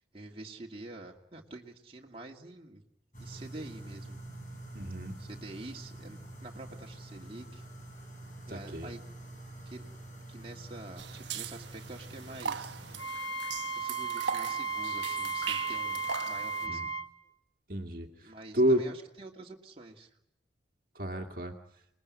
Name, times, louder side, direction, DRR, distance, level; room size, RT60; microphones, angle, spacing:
voice 1, 0.1-2.8 3.2-4.2 5.2-7.6 8.5-9.0 9.7-9.9 10.3-12.8 13.7-16.8 18.2-20.1, right 2 dB, 30° right, 0 dB, 2.4 m, -47 dB
sound 1, 3.1-13.0, right 1 dB, 45° left, 6.1 m, -46 dB
voice 2, 4.7-5.2 8.5-8.9 16.7-16.9 17.7-18.9 21.0-21.5, right 1 dB, 50° right, 3 dB, 2.0 m, -30 dB
sound 2, 11.0-16.7, right 6 dB, 75° right, 1.1 m, -40 dB
Wind instrument woodwind instrument, 13.0-17.1, right 4 dB, 70° left, 1.8 m, -34 dB
27.5 x 20.5 x 9.6 m, 0.82 s
head